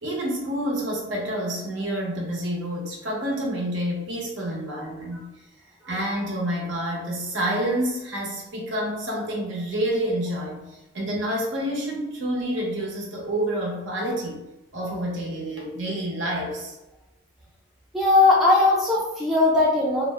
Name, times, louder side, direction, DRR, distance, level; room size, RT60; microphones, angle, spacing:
voice 1, 0.0-5.2 5.9-14.4 14.7-16.7, right 1 dB, 70° right, -2 dB, 0.8 m, -28 dB
voice 2, 17.9-20.1, left 2 dB, ahead, -6 dB, 0.4 m, -19 dB
2.5 x 2.0 x 3.4 m, 1.0 s
head